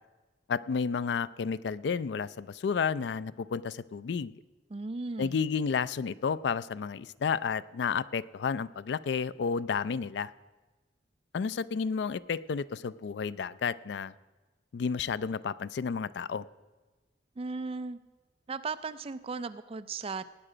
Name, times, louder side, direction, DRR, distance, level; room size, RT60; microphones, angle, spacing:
voice 1, 0.5-4.3 5.2-10.3 11.3-14.1 14.7-16.5, left 6 dB, 65° left, 17 dB, 0.4 m, -31 dB
voice 2, 4.7-5.4 17.4-18.0 18.5-20.2, right 4 dB, 30° right, 12 dB, 0.4 m, -36 dB
17.5 x 8.9 x 5.0 m, 1.3 s
head